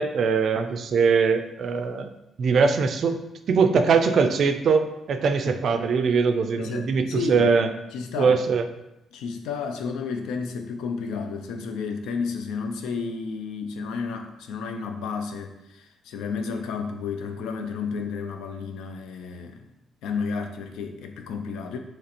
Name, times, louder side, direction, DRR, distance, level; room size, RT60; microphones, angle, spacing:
voice 1, 0.0-2.1 2.4-3.2 3.5-7.7 8.2-8.6, right 5 dB, 65° right, 8 dB, 0.3 m, -21 dB
voice 2, 6.6-7.5 7.9-8.4 9.1-19.7 20.0-21.8, left 5 dB, 85° left, 5 dB, 0.4 m, -32 dB
3.0 x 2.5 x 4.2 m, 0.89 s
cardioid pair, 75°, 0 cm